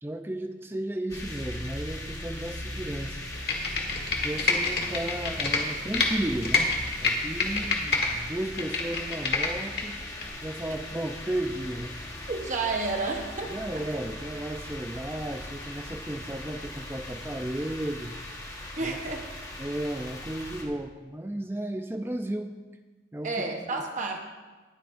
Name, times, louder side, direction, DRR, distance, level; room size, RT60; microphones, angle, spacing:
voice 1, 0.0-3.3 4.1-6.7 7.0-9.9 10.4-11.9 13.5-18.2 18.8-19.0 19.6-22.5 23.1-23.4 23.7-23.8, right 1 dB, 10° right, 7 dB, 0.4 m, -34 dB
sound 1, 1.1-20.6, left 1 dB, 20° left, 1.3 m, -39 dB
Computer keyboard, 3.3-6.1 6.4-8.1 8.4-9.8 10.2-10.3, left 4 dB, 55° left, 1.7 m, -26 dB
voice 2, 12.3-13.5 13.7-13.8 18.8-19.3 23.2-24.2, right 3 dB, 40° right, 3 dB, 1.0 m, -30 dB
20.5 x 8.5 x 2.6 m, 1.3 s
head